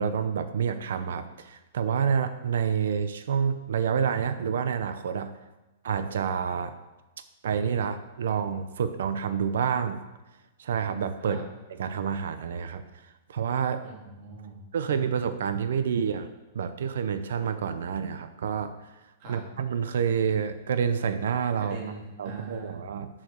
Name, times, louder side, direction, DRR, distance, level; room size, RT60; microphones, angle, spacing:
voice 1, 0.0-5.3 5.8-6.8 7.4-10.0 10.6-11.4 11.7-12.8 13.3-13.8 14.7-16.3 16.5-18.7 19.3-21.8 22.2-23.1, right 7 dB, 80° right, 10 dB, 0.8 m, -28 dB
voice 2, 13.8-14.6 19.2-19.4 21.6-22.8, right 3 dB, 40° right, -1 dB, 2.7 m, -41 dB
8.7 x 7.5 x 6.3 m, 1.1 s
supercardioid pair, 170°, 0 cm